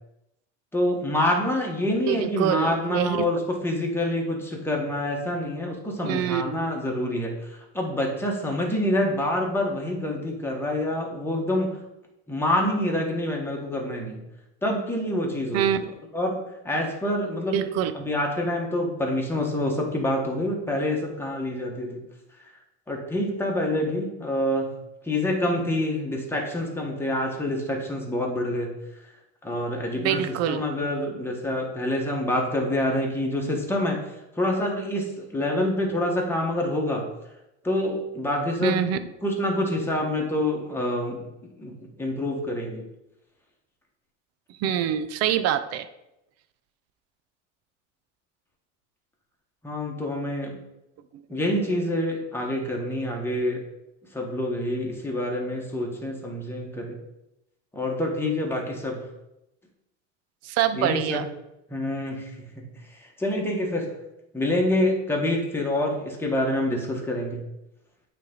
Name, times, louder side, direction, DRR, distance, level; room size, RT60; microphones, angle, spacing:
voice 1, 0.7-11.7 12.3-14.2 14.6-16.4 16.6-17.6 17.9-22.0 22.9-24.7 25.0-28.8 29.4-34.0 34.4-37.1 37.6-38.8 39.2-41.3 41.6-42.8 49.6-50.6 51.3-53.6 54.1-57.0 57.7-59.0 60.8-61.2 61.7-62.6 63.2-63.9 64.3-67.4, left 1 dB, 5° left, -1 dB, 1.3 m, -27 dB
voice 2, 2.1-3.2 6.0-6.7 15.5-15.8 17.5-17.9 30.0-30.6 38.6-39.0 44.6-45.9 60.4-61.3, right 10 dB, 45° right, 12 dB, 0.5 m, -25 dB
8.3 x 3.3 x 3.9 m, 0.90 s
supercardioid pair, 115°, 35 cm